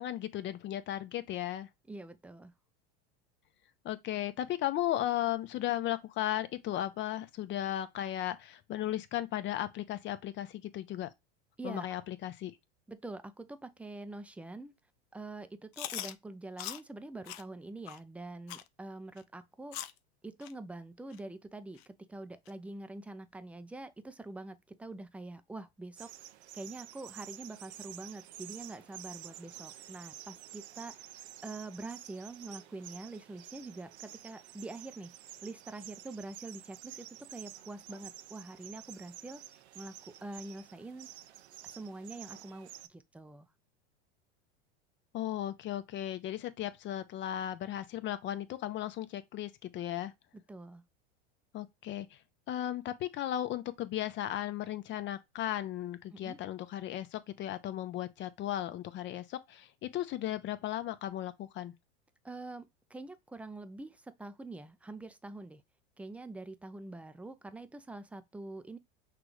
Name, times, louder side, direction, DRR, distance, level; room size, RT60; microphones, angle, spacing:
voice 1, 0.0-1.7 3.8-11.1 11.6-12.5 45.1-50.1 51.5-52.2 52.5-61.7, left 12 dB, 35° left, 0.7 m, -36 dB
voice 2, 1.9-2.5 11.6-11.9 12.9-14.7 15.1-19.8 20.2-26.1 26.5-35.1 35.4-39.4 39.7-39.9 40.2-41.1 41.6-43.5 50.5-50.8 56.1-56.4 62.2-65.6 66.0-68.8, right 2 dB, 5° right, 0.4 m, -45 dB
Chewing mastication, 15.7-16.1 16.6-16.8 17.3-17.4 17.9-18.0 18.5-18.7 19.2-19.3 19.7-20.0 20.4-20.5 21.1-21.2 21.8-21.9 22.5-22.6, left 13 dB, 70° left, 0.6 m, -41 dB
sound 1, 26.0-42.9, right 12 dB, 90° right, 0.5 m, -50 dB
6.0 x 2.4 x 3.2 m
hypercardioid pair, 105°, 32 cm